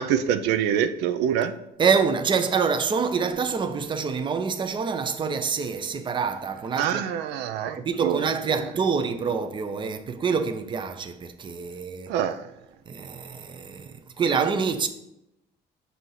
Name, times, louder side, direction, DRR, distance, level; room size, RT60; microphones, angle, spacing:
voice 1, 0.0-1.5 6.8-8.7 12.1-12.5, right 9 dB, 85° right, 0.4 m, -26 dB
voice 2, 1.8-7.0 7.8-12.1 12.9-14.9, right 5 dB, 30° right, 0.5 m, -26 dB
6.1 x 2.7 x 5.6 m
cardioid pair, 110°, 17 cm